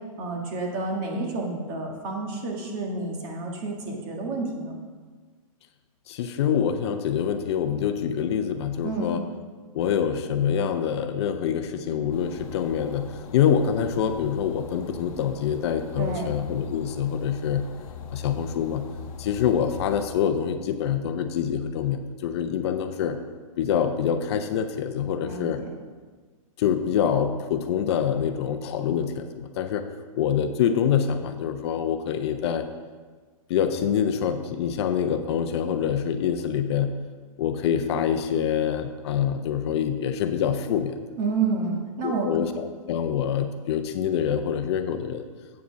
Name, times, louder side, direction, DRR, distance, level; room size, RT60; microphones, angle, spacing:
voice 1, 0.2-4.7 8.8-9.2 16.0-16.3 25.2-25.7 41.2-42.3, right 3 dB, 40° right, 1 dB, 1.6 m, -29 dB
voice 2, 6.1-9.2 9.7-13.1 13.3-17.6 18.1-18.8 19.2-23.2 23.6-25.6 26.6-29.9 30.1-32.7 33.5-36.9 37.4-41.1 42.0-45.2, left 8 dB, 50° left, 8 dB, 0.6 m, -25 dB
sound 1, 12.1-20.1, left 7 dB, 70° left, 0.9 m, -40 dB
8.2 x 5.1 x 6.2 m, 1.5 s
hypercardioid pair, 145°, 18 cm